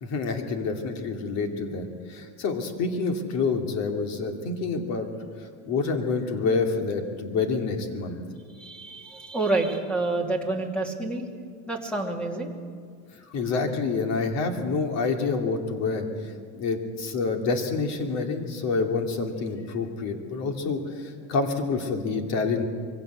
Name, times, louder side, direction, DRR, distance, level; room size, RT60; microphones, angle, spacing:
voice 1, 0.0-5.1 5.7-8.2 13.3-16.1 16.5-22.6, left 4 dB, 45° left, 5 dB, 2.7 m, -27 dB
voice 2, 8.5-11.3 11.7-12.5, right 2 dB, 5° left, 3 dB, 2.7 m, -28 dB
23.0 x 16.5 x 8.3 m, 2.1 s
supercardioid pair, 145°, 36 cm